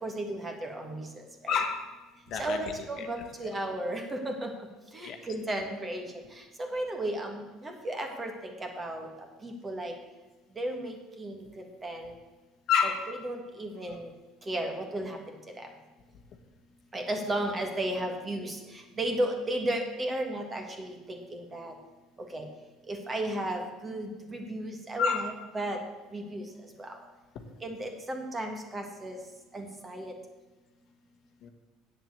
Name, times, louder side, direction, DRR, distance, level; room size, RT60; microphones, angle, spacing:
voice 1, 0.0-1.0 1.4-1.5 2.4-4.5 4.9-6.1 6.6-9.1 9.4-9.9 10.6-12.1 13.2-14.1 14.5-15.2 16.9-18.6 19.0-21.7 22.3-22.5 22.9-25.2 25.5-25.8 26.1-26.4 26.8-26.9 27.6-29.2 29.5-30.1, right 1 dB, 20° right, 4 dB, 1.6 m, -34 dB
voice 2, 1.5-1.9 2.3-2.6 3.0-3.1 3.4-3.6 5.0-5.2 12.7-13.1 13.8-14.0 25.0-25.3 31.4-31.5, left 6 dB, 50° left, 6 dB, 1.3 m, -28 dB
8.6 x 7.5 x 8.2 m, 1.2 s
cardioid pair, 145°, 0 cm